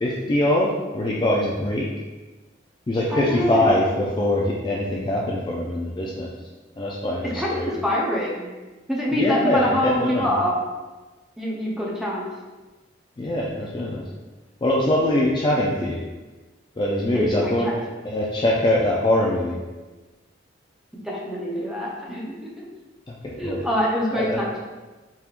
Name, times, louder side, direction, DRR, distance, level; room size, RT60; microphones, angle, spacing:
voice 1, 0.0-1.9 2.9-6.3 6.8-7.7 9.1-10.3 13.2-14.0 14.6-16.0 16.8-17.7 18.0-19.6 23.1-23.7 24.1-24.4, left 1 dB, 25° left, -3 dB, 0.4 m, -23 dB
voice 2, 3.1-3.8 7.2-8.5 8.9-10.5 11.4-12.2 17.1-17.7 21.0-22.6 23.4-24.6, equal, 5° right, -4 dB, 0.7 m, -25 dB
4.4 x 3.5 x 2.4 m, 1.2 s
head